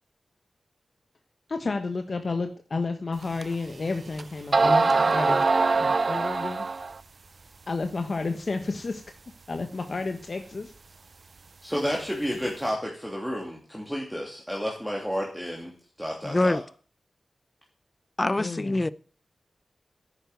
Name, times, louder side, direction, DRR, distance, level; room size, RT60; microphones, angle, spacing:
voice 1, 1.5-6.7 7.7-9.0 9.5-10.7 18.4-18.8, left 3 dB, 50° left, 1.3 m, -31 dB
sound 1, 3.4-3.5 4.2-4.3 4.5-7.0, right 3 dB, 50° right, 0.6 m, -22 dB
voice 2, 11.6-15.7 16.0-16.6, equal, ahead, 2.9 m, -31 dB
voice 3, 16.2-16.6 18.2-18.9, left 2 dB, 25° left, 0.7 m, -24 dB
10.5 x 9.9 x 9.2 m
wide cardioid pair, 110°, 0 cm